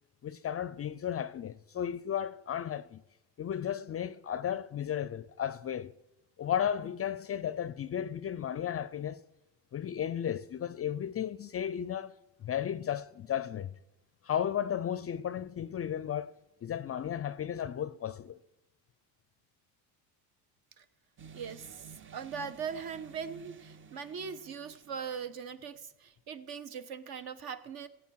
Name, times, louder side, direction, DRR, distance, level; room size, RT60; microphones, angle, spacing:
voice 1, 0.2-3.0 3.4-5.9 6.4-9.2 9.7-12.1 12.4-13.7 14.2-18.4, left 9 dB, 35° left, 0.4 m, -34 dB
sound 1, 21.2-25.5, right 6 dB, 30° right, 0.6 m, -53 dB
voice 2, 21.3-21.9 22.1-27.9, right 6 dB, 55° right, 1.1 m, -40 dB
15.5 x 8.2 x 6.2 m
supercardioid pair, 75°, 43 cm